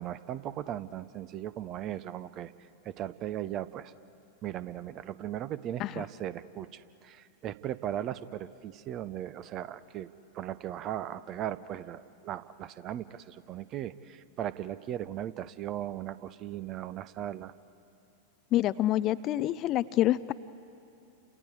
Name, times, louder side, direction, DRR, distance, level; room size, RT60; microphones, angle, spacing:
voice 1, 0.0-2.5 2.8-3.9 4.4-10.1 10.3-17.5, right 11 dB, 35° right, 16 dB, 0.7 m, -37 dB
voice 2, 18.5-20.3, left 14 dB, 35° left, 16 dB, 0.5 m, -26 dB
30.0 x 28.0 x 4.7 m, 2.7 s
figure-of-eight pair, 90°, 0 cm